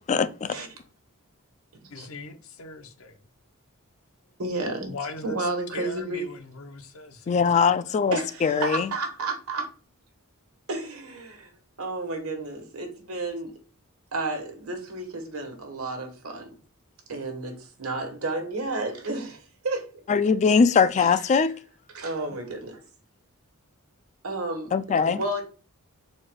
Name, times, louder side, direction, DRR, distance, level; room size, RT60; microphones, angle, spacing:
voice 1, 0.1-0.5 7.3-8.9 20.1-21.6 24.7-25.2, left 5 dB, 35° left, 0.3 m, -21 dB
voice 2, 1.9-3.2 4.9-8.0, left 3 dB, 70° left, 0.8 m, -40 dB
voice 3, 4.4-4.9 5.2-6.3 8.1-9.7 10.7-11.5 11.8-13.6 14.1-16.6 17.1-20.0 21.0-21.3 21.9-22.8 24.2-25.4, right 2 dB, 80° right, 1.3 m, -32 dB
4.2 x 2.3 x 4.6 m
head